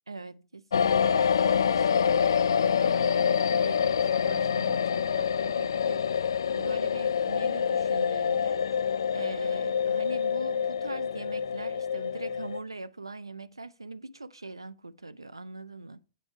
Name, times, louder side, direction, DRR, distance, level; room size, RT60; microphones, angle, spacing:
voice 1, 0.1-8.6 9.1-16.0, right 3 dB, 80° right, 0.4 m, -42 dB
sound 1, 0.7-12.6, left 7 dB, 65° left, 0.3 m, -26 dB
8.7 x 4.9 x 4.7 m
figure-of-eight pair, 105°, 2 cm